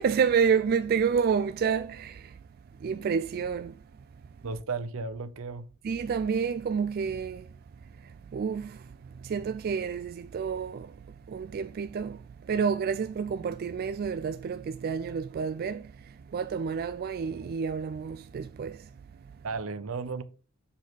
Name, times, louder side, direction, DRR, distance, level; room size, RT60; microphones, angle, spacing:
voice 1, 0.0-2.3 2.8-3.7 5.8-7.5 8.3-8.8 9.2-10.9 11.3-12.2 12.4-15.9 16.3-18.9, right 6 dB, 45° right, 0.3 m, -29 dB
voice 2, 4.4-5.7 19.4-20.2, right 4 dB, 75° right, 0.6 m, -34 dB
7.1 x 4.3 x 4.0 m
head